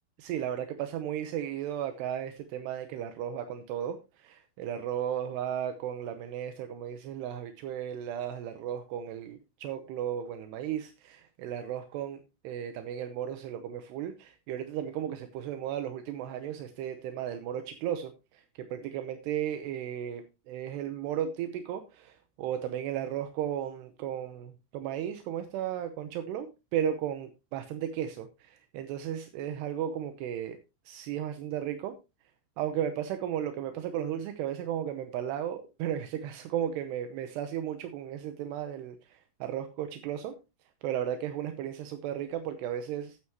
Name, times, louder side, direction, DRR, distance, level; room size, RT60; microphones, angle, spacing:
voice 1, 0.2-18.4 18.7-30.6 30.9-32.0 32.6-40.3 40.8-43.2, right 10 dB, 80° right, 8 dB, 2.9 m, -35 dB
12.0 x 9.4 x 2.9 m, 0.27 s
omnidirectional pair, 4.9 m